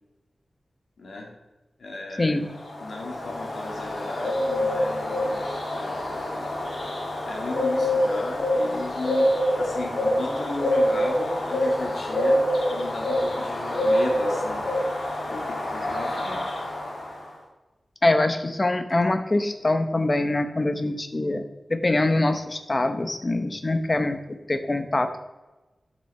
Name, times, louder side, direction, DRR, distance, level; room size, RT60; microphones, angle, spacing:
voice 1, 1.0-1.3 1.8-2.3 2.8-6.6 7.3-9.3 9.6-12.4 12.7-16.6, left 2 dB, 90° left, -1 dB, 2.3 m, -36 dB
Bird, 2.6-17.3, left 1 dB, 55° left, 2.5 m, -26 dB
voice 2, 18.0-21.4 21.7-25.2, left 2 dB, 30° left, 8 dB, 0.9 m, -24 dB
11.5 x 6.1 x 4.3 m, 1.1 s
wide cardioid pair, 120°, 0 cm